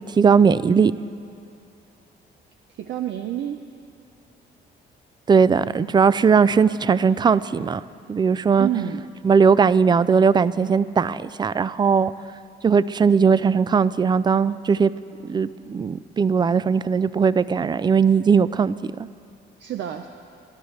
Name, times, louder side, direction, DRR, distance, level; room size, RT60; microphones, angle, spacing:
voice 1, 0.2-0.9 5.3-7.8 8.1-8.7 9.2-12.1 12.6-14.9 15.3-18.7, right 6 dB, 20° right, 17 dB, 0.3 m, -18 dB
voice 2, 2.8-3.6 8.6-9.1 19.6-20.1, right 11 dB, 70° right, 6 dB, 0.6 m, -28 dB
23.5 x 12.5 x 3.2 m, 2.7 s
cardioid pair, 90°, 20 cm